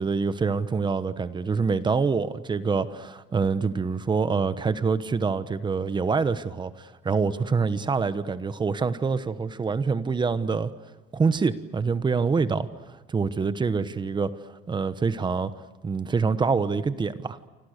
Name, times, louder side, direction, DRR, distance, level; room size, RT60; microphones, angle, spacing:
voice 1, 0.0-10.7 11.1-12.7 13.1-14.3 14.7-15.5 15.8-17.4, right 5 dB, 20° right, 13 dB, 1.2 m, -25 dB
28.5 x 26.0 x 6.7 m, 1.2 s
cardioid pair, 155°, 21 cm